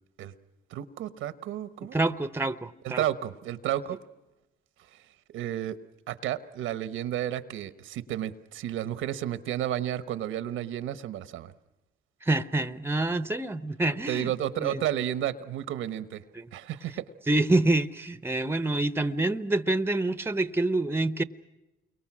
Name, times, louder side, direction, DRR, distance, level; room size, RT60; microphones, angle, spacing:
voice 1, 0.7-2.0 2.8-4.0 4.9-5.0 5.3-5.8 6.1-11.5 14.1-16.2 16.5-17.0, right 11 dB, 90° right, 13 dB, 1.1 m, -32 dB
voice 2, 1.9-3.0 12.2-14.3 14.6-14.8 16.3-16.5 17.3-21.2, right 2 dB, 10° right, 14 dB, 0.9 m, -27 dB
29.5 x 23.0 x 6.2 m, 1.0 s
cardioid pair, 90°, 20 cm